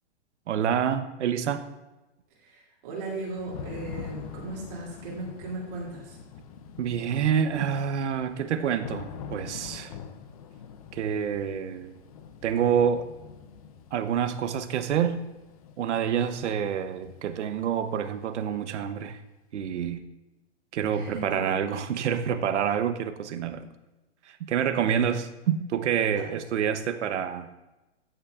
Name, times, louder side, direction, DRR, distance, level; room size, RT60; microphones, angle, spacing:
voice 1, 0.5-1.7 6.8-9.9 10.9-12.0 12.4-13.1 13.9-15.2 15.8-19.2 19.5-20.0 20.7-23.7 24.3-27.5, right 8 dB, 90° right, 10 dB, 0.8 m, -27 dB
voice 2, 2.4-6.2 20.9-21.6 26.1-26.2, right 3 dB, 50° right, -4 dB, 2.6 m, -37 dB
Thunder / Rain, 3.1-18.8, left 7 dB, 35° left, 0.5 m, -45 dB
13.5 x 5.8 x 2.4 m, 1.1 s
hypercardioid pair, 165°, 34 cm